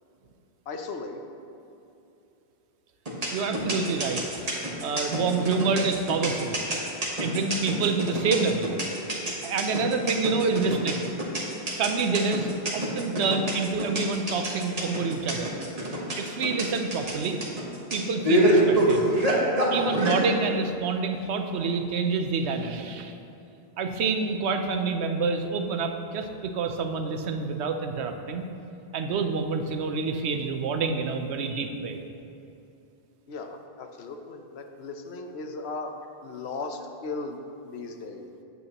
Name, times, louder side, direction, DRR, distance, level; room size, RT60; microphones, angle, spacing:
voice 1, 0.7-1.2 12.1-12.2 18.1-18.2 33.3-35.9 36.2-38.3, left 3 dB, 75° left, 5 dB, 1.0 m, -37 dB
sound 1, 3.1-20.2, right 1 dB, 35° right, 1.3 m, -25 dB
voice 2, 3.3-6.6 7.2-8.7 9.4-11.1 11.8-15.5 16.2-17.4 17.9-19.1 19.7-23.1 23.8-28.5 28.9-32.0, right 4 dB, 90° right, 6 dB, 0.9 m, -27 dB
9.3 x 8.0 x 2.9 m, 2.8 s
omnidirectional pair, 1.1 m